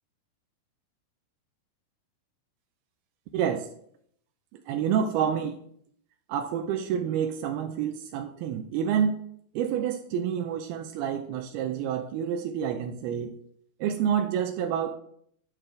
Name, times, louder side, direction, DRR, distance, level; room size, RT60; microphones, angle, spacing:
voice 1, 3.3-3.7 4.7-5.6 6.3-9.2 9.6-13.3 13.8-15.0, right 8 dB, 85° right, 5 dB, 2.5 m, -28 dB
12.0 x 5.9 x 3.3 m, 0.66 s
omnidirectional pair, 4.4 m